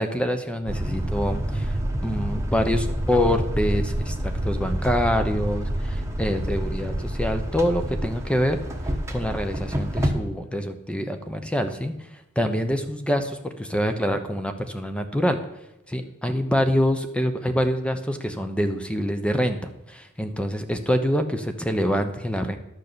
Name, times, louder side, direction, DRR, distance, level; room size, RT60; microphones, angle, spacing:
voice 1, 0.0-8.6 9.1-15.4 15.9-22.6, equal, 5° left, 7 dB, 0.8 m, -26 dB
sound 1, 0.7-10.1, equal, 15° right, 1.2 m, -28 dB
12.0 x 6.5 x 6.8 m, 0.86 s
head